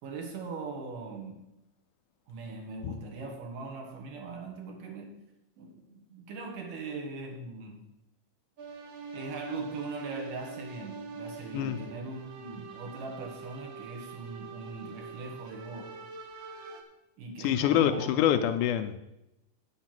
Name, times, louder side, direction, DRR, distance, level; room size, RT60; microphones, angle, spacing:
voice 1, 0.0-1.4 2.3-5.2 5.6-7.9 9.1-16.0 17.2-18.2, right 3 dB, 75° right, 2 dB, 3.2 m, -40 dB
sound 1, 8.6-16.8, right 4 dB, 60° right, 1.2 m, -44 dB
voice 2, 17.4-19.0, left 11 dB, 80° left, 9 dB, 2.0 m, -25 dB
8.6 x 8.1 x 6.0 m, 0.88 s
omnidirectional pair, 3.8 m